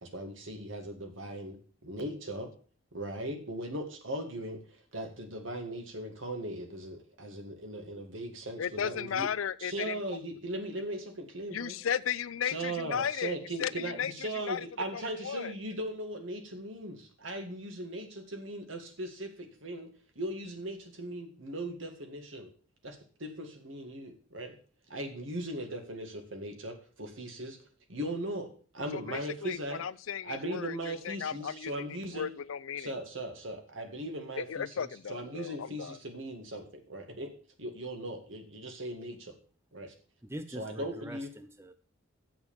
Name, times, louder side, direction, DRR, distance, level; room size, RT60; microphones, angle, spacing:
voice 1, 0.0-1.6 1.8-2.5 2.9-9.3 9.6-11.8 12.4-19.9 20.2-22.5 22.8-24.6 24.9-27.6 27.9-28.5 28.7-29.8 30.2-32.3 32.8-37.3 37.6-39.3 39.7-39.9 40.5-41.3, right 1 dB, 75° right, 1.9 m, -38 dB
voice 2, 8.6-10.0 11.5-14.7 14.9-15.5 28.9-32.9 34.4-36.0, left 8 dB, 85° left, 0.5 m, -35 dB
voice 3, 40.3-41.7, equal, 15° right, 0.5 m, -43 dB
7.7 x 6.1 x 7.2 m
head